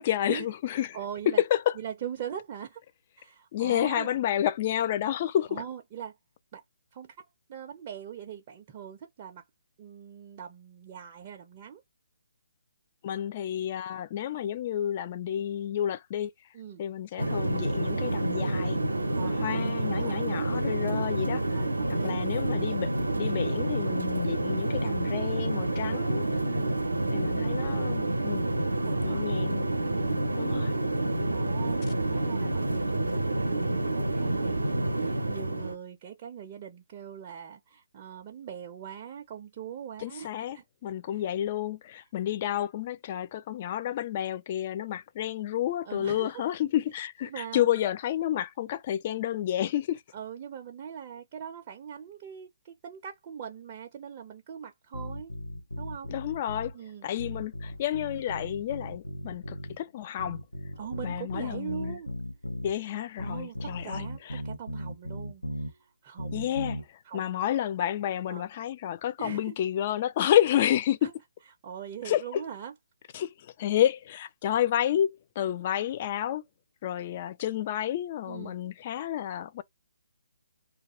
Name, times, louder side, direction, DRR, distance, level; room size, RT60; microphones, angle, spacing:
voice 1, 0.0-1.0 1.3-1.8 3.5-5.6 13.0-16.3 16.8-18.8 19.2-21.6 21.9-26.3 27.1-28.4 29.0-29.6 30.4-30.7 40.0-50.0 56.1-56.8 57.0-60.4 61.0-62.0 62.6-64.4 66.3-71.1 72.0-72.4 73.1-76.4 76.8-79.6, left 11 dB, 35° left, 0.3 m, -30 dB
voice 2, 0.9-1.4 1.8-2.8 3.2-4.2 5.5-6.2 6.5-6.6 6.9-9.4 9.8-11.8 16.5-16.8 19.1-20.2 21.5-22.3 26.4-26.8 28.9-29.2 31.3-40.6 45.8-46.3 47.2-47.7 50.1-55.3 55.8-56.1 56.7-57.1 60.8-62.1 63.2-66.7 67.0-67.4 68.3-68.5 69.2-69.5 71.0-71.1 71.6-72.7 78.3-78.6, right 8 dB, 35° right, 0.5 m, -41 dB
sound 1, 17.2-35.7, right 2 dB, 85° right, 0.6 m, -28 dB
sound 2, 54.9-56.7 57.2-59.8 60.2-62.8 63.2-65.7 66.2-66.8, equal, 90° left, 0.7 m, -37 dB
2.3 x 2.2 x 3.0 m
figure-of-eight pair, 140°, 0 cm